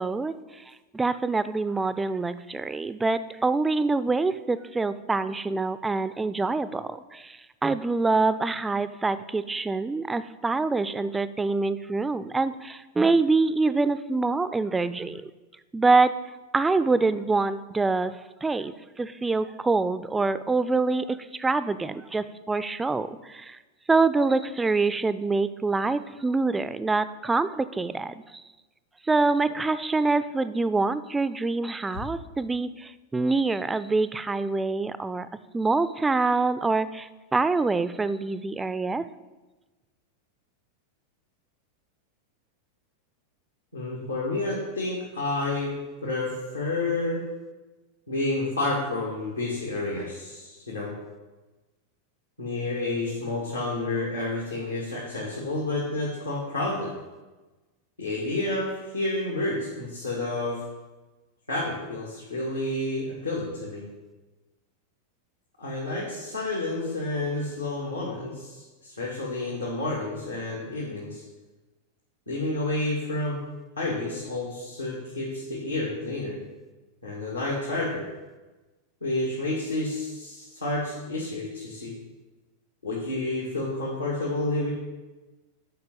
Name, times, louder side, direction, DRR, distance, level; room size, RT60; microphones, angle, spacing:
voice 1, 0.0-15.3 15.7-16.2 16.5-23.6 23.9-28.4 29.0-35.3 35.5-39.1, right 3 dB, 10° right, 14 dB, 0.4 m, -25 dB
voice 2, 43.7-45.7 46.0-47.2 48.1-50.9 52.4-56.9 58.0-60.6 61.5-63.8 65.6-71.2 72.3-73.4 73.8-76.4 77.0-78.1 79.0-81.9 82.8-84.7, left 2 dB, 80° left, -6 dB, 2.0 m, -30 dB
8.7 x 5.8 x 7.3 m, 1.2 s
figure-of-eight pair, 90°, 0 cm